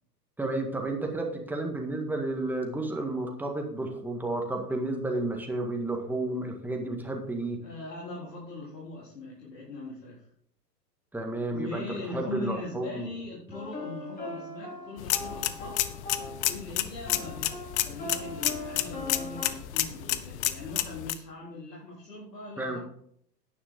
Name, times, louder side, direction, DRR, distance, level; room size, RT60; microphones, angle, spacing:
voice 1, 0.4-7.6 11.1-11.8 12.1-13.1 22.6-22.8, right 2 dB, 5° right, 2 dB, 1.8 m, -31 dB
voice 2, 7.6-10.3 11.5-16.0 16.4-22.8, left 2 dB, 75° left, -6 dB, 3.9 m, -40 dB
sound 1, 13.5-16.5 17.0-19.5, left 1 dB, 15° left, 3.9 m, -40 dB
sound 2, 15.0-21.1, left 13 dB, 45° left, 1.0 m, -31 dB
11.0 x 9.7 x 3.7 m, 0.67 s
figure-of-eight pair, 110°, 50 cm